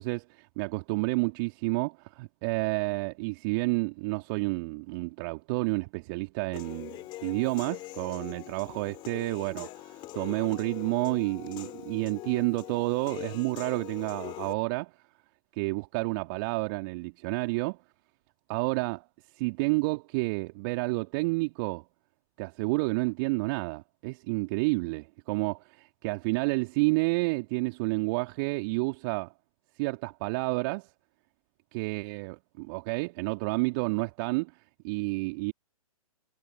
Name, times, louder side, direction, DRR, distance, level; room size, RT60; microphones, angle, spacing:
voice 1, 0.0-14.9 15.5-17.8 18.5-19.0 19.3-21.8 22.4-29.3 29.8-30.9 31.7-34.5 34.8-35.5, right 27 dB, 35° right, 2.3 m, -30 dB
Human voice / Piano, 6.5-14.5, left 17 dB, 25° left, 3.0 m, -42 dB
figure-of-eight pair, 120°, 18 cm